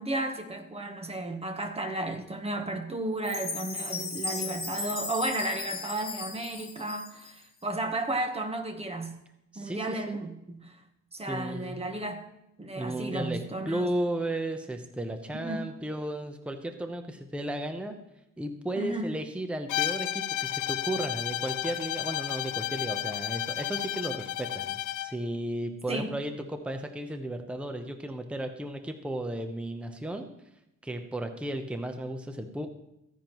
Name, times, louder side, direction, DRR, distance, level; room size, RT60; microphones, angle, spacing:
voice 1, 0.0-9.2 9.5-10.8 11.1-12.3 12.6-13.9 15.3-15.7 18.8-19.1 25.9-26.1, right 1 dB, 20° right, 6 dB, 1.1 m, -33 dB
Chime, 3.2-7.4, left 4 dB, 30° left, 1.9 m, -36 dB
voice 2, 9.5-10.0 11.3-11.7 12.8-18.0 18.4-30.3 30.8-32.7, right 1 dB, 5° right, 6 dB, 0.8 m, -34 dB
Bowed string instrument, 19.7-25.2, left 14 dB, 70° left, 0.5 m, -32 dB
14.5 x 10.0 x 3.0 m, 0.87 s
wide cardioid pair, 140°, 32 cm